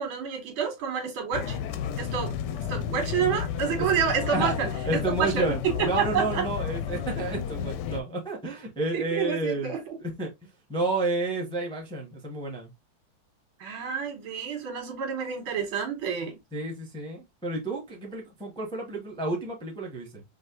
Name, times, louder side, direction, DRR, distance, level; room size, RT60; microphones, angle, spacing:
voice 1, 0.0-1.6 2.0-2.4 2.7-6.5 8.9-10.0 13.6-16.4, right 7 dB, 80° right, 2.1 m, -29 dB
sound 1, 1.3-8.0, left 8 dB, 70° left, 1.1 m, -32 dB
voice 2, 4.8-9.7 10.2-12.7 16.5-20.2, right 2 dB, 5° left, 0.7 m, -31 dB
5.3 x 2.7 x 2.9 m
omnidirectional pair, 2.2 m